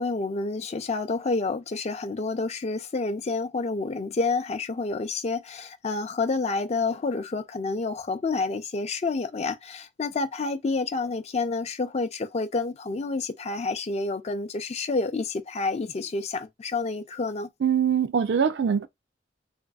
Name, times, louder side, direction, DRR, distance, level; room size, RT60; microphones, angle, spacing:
voice 1, 0.0-17.5, left 3 dB, 40° left, 0.4 m, -29 dB
voice 2, 17.6-18.9, right 7 dB, 70° right, 0.4 m, -23 dB
3.3 x 2.6 x 2.3 m
head